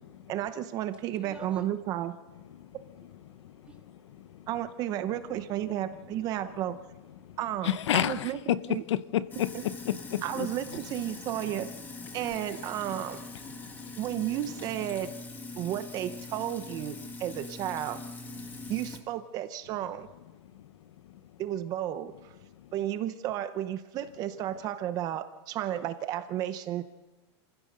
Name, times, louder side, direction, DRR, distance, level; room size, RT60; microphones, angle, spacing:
voice 1, 0.3-2.1 4.5-6.8 7.4-8.8 9.5-9.6 10.2-11.7 12.1-13.2 14.0-15.1 15.6-18.0 18.7-20.1 21.4-22.3 22.7-26.8, right 12 dB, 25° right, 0.7 m, -33 dB
voice 2, 0.9-1.9 2.3-4.5 6.0-6.1 7.1-7.4, right 2 dB, 10° right, 1.8 m, -56 dB
voice 3, 7.6-10.5, left 11 dB, 80° left, 1.0 m, -29 dB
Sink (filling or washing), 9.3-19.0, left 3 dB, 10° left, 1.5 m, -42 dB
28.0 x 15.5 x 6.6 m
supercardioid pair, 170°, 15 cm